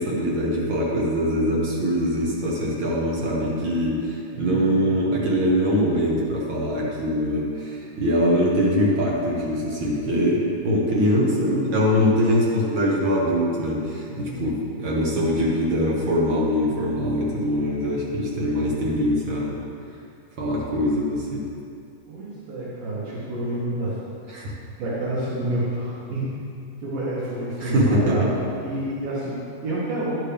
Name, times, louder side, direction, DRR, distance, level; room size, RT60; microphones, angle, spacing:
voice 1, 0.0-19.6 20.4-21.4 24.3-24.5 27.6-28.2, equal, 60° right, -5 dB, 1.4 m, -23 dB
voice 2, 4.3-4.8 10.4-10.5 14.1-14.5 22.1-24.0 24.8-26.4 26.8-30.1, right 1 dB, 90° right, -9 dB, 3.1 m, -29 dB
11.5 x 6.4 x 3.4 m, 2.4 s
omnidirectional pair, 3.7 m